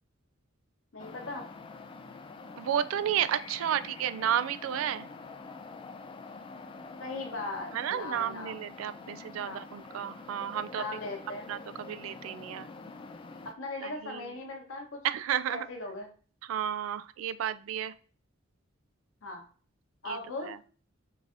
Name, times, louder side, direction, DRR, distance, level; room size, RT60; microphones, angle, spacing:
voice 1, 0.9-1.5 7.0-8.6 9.4-9.6 10.7-11.5 13.4-15.0 15.5-16.1 19.2-19.4 20.0-20.6, left 2 dB, 75° left, 2 dB, 0.9 m, -38 dB
sound 1, 1.0-13.5, left 3 dB, 25° left, 0.3 m, -46 dB
voice 2, 2.6-5.1 7.7-10.8 11.5-12.7 13.8-14.4 15.0-15.7 16.4-17.9 20.0-20.6, right 9 dB, 85° right, 15 dB, 0.3 m, -32 dB
4.6 x 2.6 x 2.5 m, 0.40 s
head